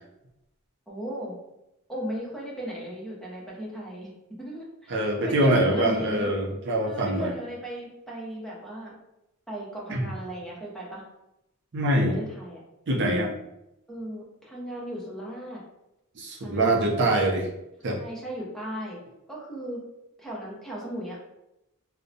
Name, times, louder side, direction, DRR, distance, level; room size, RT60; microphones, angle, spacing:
voice 1, 0.9-1.4 1.9-4.1 4.4-6.3 6.8-8.9 9.5-11.0 11.9-12.6 13.9-15.6 16.4-17.3 17.8-19.0 19.3-19.8 20.2-21.2, right 1 dB, ahead, -5 dB, 0.7 m, -36 dB
voice 2, 4.9-7.3 9.9-10.1 11.7-12.2 12.9-13.3 16.2-17.5 17.8-18.0, right 1 dB, 55° right, -1 dB, 0.5 m, -24 dB
2.6 x 2.1 x 2.6 m, 0.87 s
head